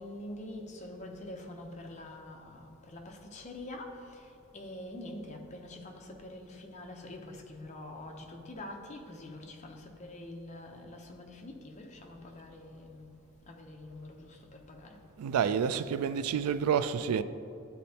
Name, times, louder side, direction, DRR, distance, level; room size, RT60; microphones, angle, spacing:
voice 1, 0.0-4.3 4.5-13.1 13.5-15.0, left 1 dB, 30° left, 0.6 m, -45 dB
voice 2, 15.2-17.2, right 7 dB, 85° right, 0.3 m, -29 dB
11.5 x 4.2 x 2.8 m
head